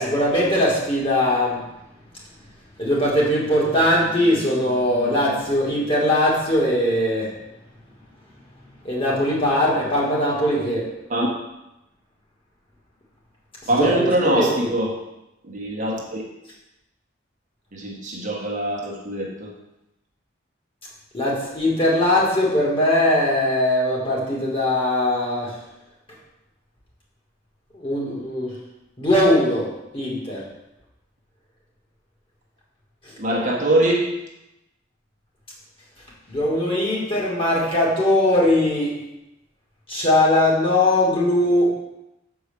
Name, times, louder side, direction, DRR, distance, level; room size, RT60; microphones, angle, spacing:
voice 1, 0.0-1.6 2.8-7.3 8.8-10.8 13.8-14.5 21.1-25.6 27.7-28.6 29.0-29.7 29.9-30.4 36.3-39.0 39.9-41.7, left 1 dB, 30° left, -5 dB, 2.5 m, -20 dB
voice 2, 13.7-15.0 15.4-16.2 17.7-19.5 33.2-34.1, right 1 dB, 40° right, -2 dB, 1.4 m, -23 dB
6.9 x 4.8 x 6.9 m, 0.91 s
head